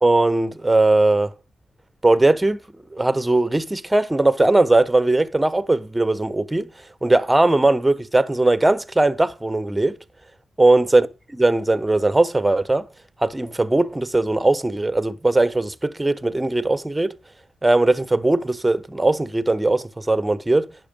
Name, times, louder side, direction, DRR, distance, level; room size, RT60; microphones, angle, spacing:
voice 1, 0.0-1.3 2.0-2.6 2.9-6.7 7.0-9.9 10.6-11.1 11.3-12.9 13.2-17.1 17.6-20.6, right 2 dB, 20° right, 1.0 m, -19 dB
10.0 x 6.2 x 5.3 m
supercardioid pair, 40°, 0 cm